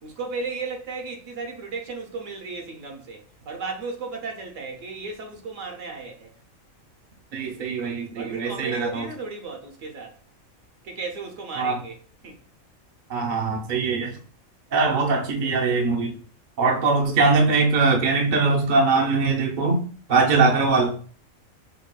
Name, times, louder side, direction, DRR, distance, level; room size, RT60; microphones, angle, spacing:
voice 1, 0.0-6.3 8.1-10.2 10.8-12.4, right 4 dB, 70° right, 1.1 m, -35 dB
voice 2, 7.3-9.0 11.6-11.8 13.1-14.2 14.7-16.2 16.6-19.8 20.1-21.0, right 4 dB, 50° right, 0.6 m, -21 dB
5.1 x 2.3 x 2.2 m
omnidirectional pair, 1.4 m